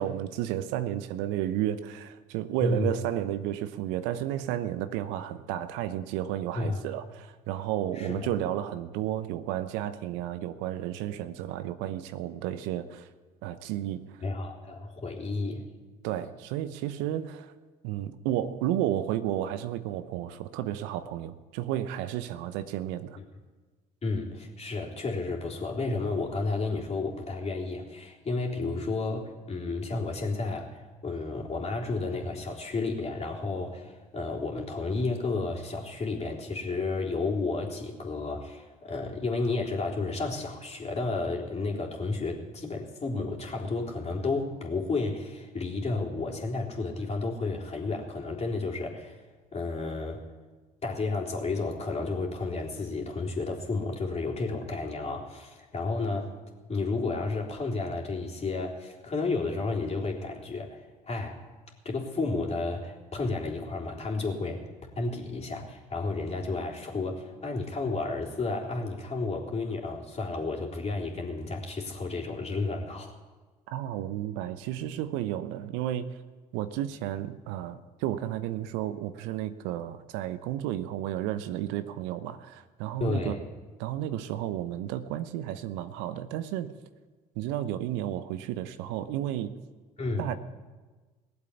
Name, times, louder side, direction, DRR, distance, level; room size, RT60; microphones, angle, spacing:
voice 1, 0.0-13.1 13.4-14.1 16.0-17.5 17.8-23.2 73.7-76.1 76.5-83.4 83.8-86.7 87.4-89.6 90.2-90.4, right 12 dB, 70° right, 12 dB, 0.8 m, -32 dB
voice 2, 2.6-2.9 6.5-6.8 7.9-8.3 14.2-15.7 23.2-23.3 24.0-49.2 49.5-50.2 50.8-56.3 56.7-61.4 61.9-64.7 65.0-73.1 83.0-83.5 90.0-90.3, left 3 dB, 35° left, -1 dB, 3.6 m, -32 dB
19.0 x 8.1 x 8.5 m, 1.3 s
hypercardioid pair, 60°, 20 cm